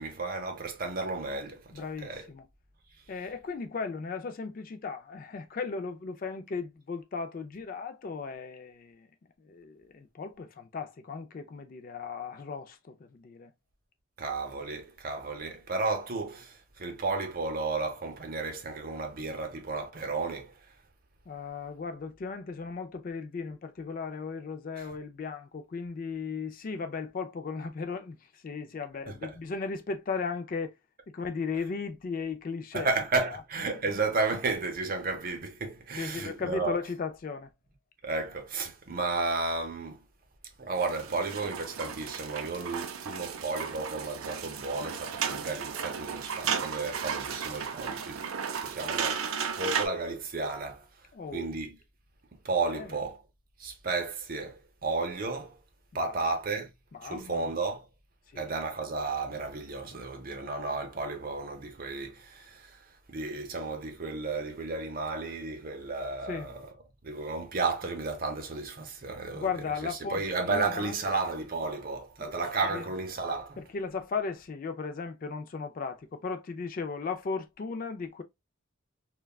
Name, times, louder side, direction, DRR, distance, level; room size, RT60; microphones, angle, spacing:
voice 1, 0.0-2.3 14.2-20.7 24.8-24.9 29.1-29.4 32.7-36.8 38.0-40.0 40.6-48.3 48.6-50.9 51.3-51.8 52.3-53.2 53.6-55.6 55.9-56.7 57.0-57.8 58.4-66.7 67.0-73.6, right 3 dB, 40° right, 0.7 m, -33 dB
voice 2, 1.7-2.5 3.1-9.1 9.4-13.5 21.3-30.7 31.1-32.9 36.0-37.5 51.1-51.5 52.7-52.9 55.9-56.2 56.9-57.5 58.3-58.5 66.3-66.5 69.3-70.2 70.5-70.9 72.2-72.3 72.6-72.8 73.6-78.2, left 5 dB, 40° left, 0.3 m, -36 dB
sound 1, 40.8-49.9, right 7 dB, 85° right, 0.5 m, -34 dB
3.4 x 2.2 x 2.3 m
head